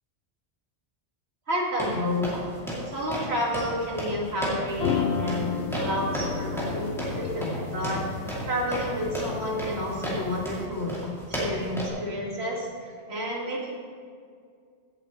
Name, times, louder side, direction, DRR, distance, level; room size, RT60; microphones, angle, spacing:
voice 1, 1.5-2.4 2.9-6.9 7.1-8.0 8.5-12.7 13.1-13.7, left 1 dB, 75° right, -3 dB, 2.3 m, -30 dB
sound 1, 1.8-11.9, right 1 dB, ahead, 2.6 m, -34 dB
sound 2, 4.7-10.6, left 6 dB, 85° left, 0.9 m, -33 dB
16.0 x 7.9 x 3.2 m, 2.1 s
omnidirectional pair, 1.1 m